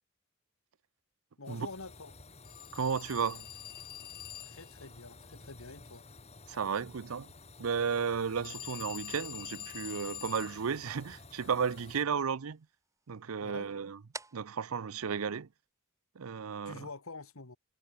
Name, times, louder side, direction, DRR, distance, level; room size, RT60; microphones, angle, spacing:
voice 1, 1.4-2.1 4.4-6.0 13.4-13.7 16.6-17.6, left 3 dB, 70° left, 2.1 m, -46 dB
sound 1, 1.4-12.0, left 3 dB, 30° left, 3.8 m, -53 dB
Telephone, 2.4-4.8 8.4-10.6, left 11 dB, 45° left, 1.7 m, -45 dB
sound 2, 2.4-16.1, right 3 dB, 15° right, 4.0 m, -58 dB
voice 2, 2.7-3.5 6.5-7.3 7.6-12.7 13.1-14.0 14.3-15.5 16.2-16.9, right 6 dB, 75° right, 0.6 m, -33 dB
head